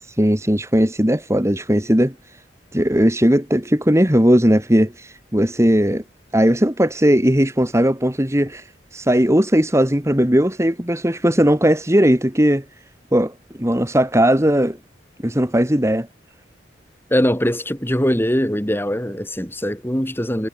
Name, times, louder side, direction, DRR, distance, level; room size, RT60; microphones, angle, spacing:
voice 1, 0.2-2.1 2.7-6.0 6.3-8.6 8.9-12.6 13.1-13.3 13.6-14.8 15.2-16.1, equal, 15° right, 2.5 m, -17 dB
voice 2, 17.1-20.5, equal, 10° left, 3.5 m, -21 dB
head